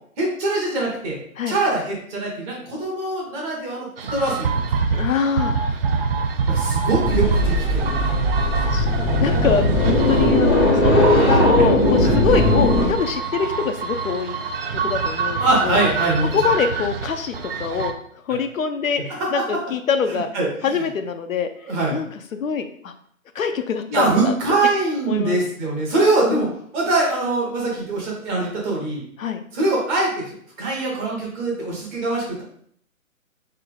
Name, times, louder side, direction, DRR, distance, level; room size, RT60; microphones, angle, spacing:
voice 1, 0.2-1.2 1.5-4.7 6.5-8.5 10.1-10.2 12.0-12.1 15.4-16.3 18.3-18.4 19.3-19.4 20.1-20.5 21.7-22.0 23.9-26.5 26.7-29.0 29.5-32.4, right 2 dB, 15° right, -3 dB, 0.9 m, -23 dB
sound 1, 4.0-17.9, right 5 dB, 45° right, 0.5 m, -25 dB
voice 2, 4.9-5.6 8.5-14.4 14.7-15.8 16.3-18.0 18.3-20.3 20.6-21.5 21.9-22.9 23.3-24.3 25.1-25.4 26.2-26.5 29.2-29.4, left 6 dB, 70° left, 7 dB, 0.6 m, -24 dB
sound 2, 7.0-12.9, left 1 dB, 20° left, 0.5 m, -19 dB
4.1 x 3.3 x 3.8 m, 0.62 s
figure-of-eight pair, 140°, 42 cm